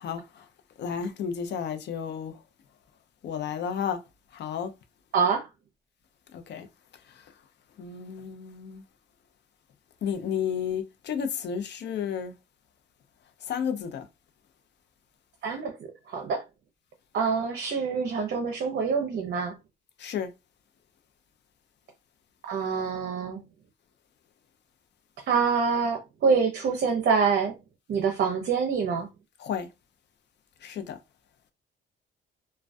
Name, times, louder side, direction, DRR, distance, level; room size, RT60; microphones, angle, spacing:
voice 1, 0.0-0.4 0.8-2.3 3.2-4.0 4.3-4.7 6.3-6.7 7.8-8.8 10.0-12.3 13.5-14.1 20.0-20.3 29.4-29.7 30.6-31.0, left 7 dB, 60° left, 0.5 m, -32 dB
voice 2, 5.1-5.5 15.4-15.8 16.1-16.4 17.1-19.6 22.5-23.4 25.3-27.5 27.9-29.1, right 5 dB, 55° right, 0.5 m, -26 dB
2.2 x 2.2 x 2.5 m
cardioid pair, 90°, 20 cm